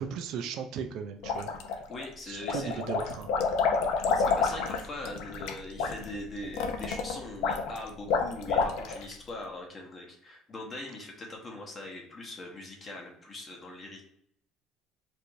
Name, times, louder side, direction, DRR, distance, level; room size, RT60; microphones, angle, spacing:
voice 1, 0.0-1.5 2.3-3.3, right 6 dB, 55° right, 6 dB, 0.4 m, -36 dB
sound 1, 1.2-2.0 2.4-9.1, left 5 dB, 70° left, 0.6 m, -29 dB
voice 2, 1.9-2.8 4.1-14.0, left 2 dB, 20° left, 0 dB, 0.9 m, -41 dB
4.6 x 2.6 x 2.5 m, 0.70 s
cardioid pair, 170°, 0 cm